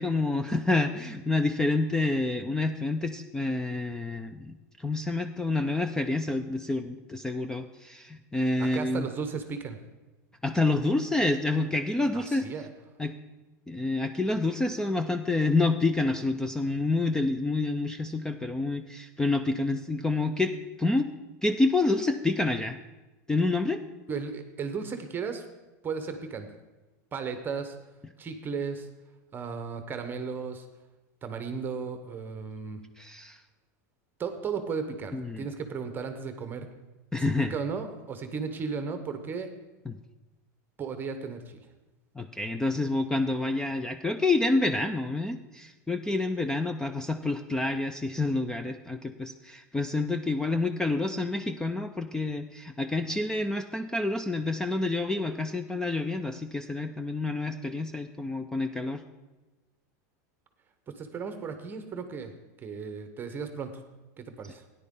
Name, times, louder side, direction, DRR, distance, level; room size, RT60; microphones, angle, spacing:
voice 1, 0.0-9.1 10.4-12.5 13.0-13.1 13.7-21.1 21.4-22.8 23.3-23.8 33.0-33.4 35.1-35.5 37.1-37.5 39.9-40.0 42.2-59.0, left 2 dB, 5° left, 9 dB, 0.3 m, -28 dB
voice 2, 8.6-9.8 12.1-12.7 24.1-25.4 25.8-26.5 27.1-27.8 28.2-28.9 29.3-30.7 31.2-32.8 34.2-36.7 37.2-39.5 40.8-41.6 60.9-62.3 62.6-63.8 64.2-64.6, right 5 dB, 20° right, 8 dB, 0.9 m, -35 dB
13.5 x 10.0 x 3.7 m, 1.1 s
supercardioid pair, 140°, 10 cm